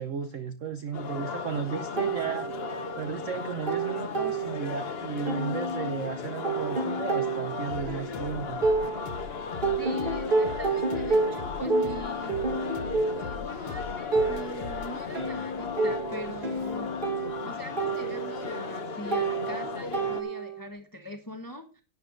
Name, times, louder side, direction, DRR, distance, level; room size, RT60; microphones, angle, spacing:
voice 1, 0.0-2.5 3.0-8.6, right 7 dB, 55° right, 9 dB, 0.9 m, -34 dB
sound 1, 0.9-20.2, left 5 dB, 55° left, 0.6 m, -36 dB
sound 2, 2.0-3.1 3.4-4.9 5.3-9.3 9.6-20.7, right 3 dB, 25° right, 2.0 m, -30 dB
sound 3, 7.7-17.3, left 6 dB, 80° left, 2.1 m, -43 dB
voice 2, 9.8-12.4 13.1-16.9 17.4-21.8, equal, 15° left, 5 dB, 0.7 m, -42 dB
11.5 x 10.0 x 3.9 m, 0.34 s
omnidirectional pair, 2.3 m